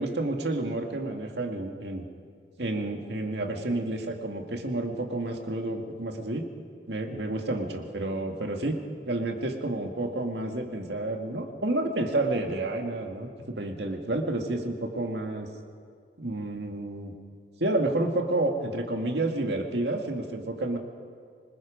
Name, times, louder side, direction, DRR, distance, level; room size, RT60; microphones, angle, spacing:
voice 1, 0.0-2.1 2.6-6.5 6.9-8.8 9.1-15.5 16.2-17.1 17.6-20.8, right 2 dB, 75° right, 3 dB, 2.0 m, -30 dB
26.0 x 20.5 x 5.2 m, 2.2 s
head